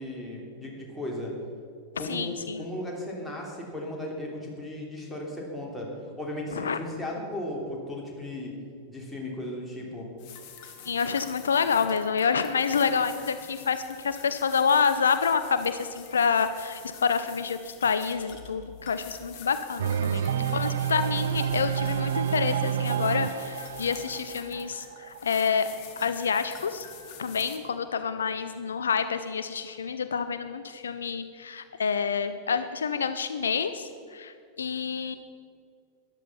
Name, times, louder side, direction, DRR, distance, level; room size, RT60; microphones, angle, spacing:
voice 1, 0.0-1.3 1.9-5.9 6.2-8.5 8.9-10.1 20.1-20.9, left 1 dB, 5° left, -3 dB, 3.2 m, -36 dB
voice 2, 2.0-2.6 6.5-6.8 10.8-20.2 20.5-25.7 26.0-26.9 27.2-35.2, left 6 dB, 70° left, 11 dB, 0.5 m, -28 dB
sound 1, 10.2-27.6, left 7 dB, 45° left, 1.6 m, -46 dB
sound 2, 19.8-25.5, right 9 dB, 60° right, 0.3 m, -29 dB
13.0 x 11.0 x 5.6 m, 2.3 s
figure-of-eight pair, 90°, 0 cm